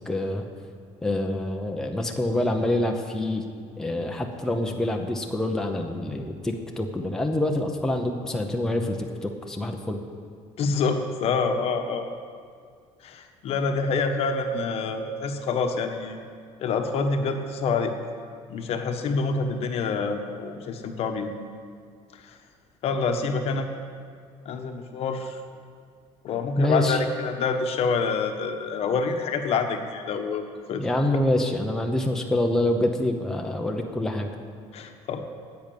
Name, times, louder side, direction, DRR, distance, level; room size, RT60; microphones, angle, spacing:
voice 1, 0.1-0.4 1.0-3.4 3.8-10.0 26.6-27.0 30.8-34.3, left 1 dB, 5° left, 2 dB, 0.8 m, -26 dB
voice 2, 10.6-12.0 13.0-16.2 16.6-17.9 18.5-21.3 22.2-22.4 22.8-23.7 24.4-25.4 26.2-30.4 30.7-30.8 34.7-35.2, left 4 dB, 50° left, 5 dB, 1.1 m, -27 dB
10.0 x 8.1 x 9.2 m, 2.1 s
cardioid pair, 150°, 13 cm